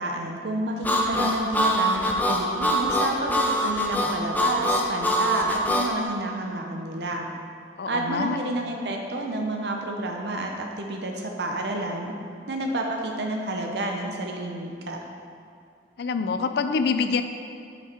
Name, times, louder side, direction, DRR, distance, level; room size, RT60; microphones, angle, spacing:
voice 1, 0.0-7.3 7.9-12.1 12.5-15.0, right 1 dB, 65° right, 2 dB, 0.6 m, -30 dB
Harmonica, 0.8-5.9, equal, 10° left, 0.5 m, -24 dB
voice 2, 7.8-8.4 16.0-17.2, left 5 dB, 65° left, 9 dB, 0.4 m, -25 dB
6.0 x 5.4 x 4.4 m, 2.4 s
head